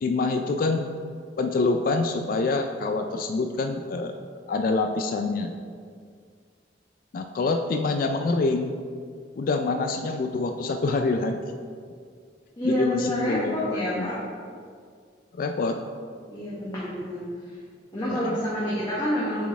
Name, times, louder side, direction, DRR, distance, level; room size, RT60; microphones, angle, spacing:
voice 1, 0.0-0.9 1.4-4.2 4.5-5.5 7.1-8.8 9.4-11.4 12.6-14.1 15.3-15.8 18.1-18.4, left 3 dB, 50° left, 5 dB, 0.3 m, -26 dB
voice 2, 12.6-14.2 16.3-17.2 17.9-19.4, equal, 25° left, -9 dB, 1.0 m, -28 dB
7.2 x 4.2 x 3.5 m, 2.1 s
head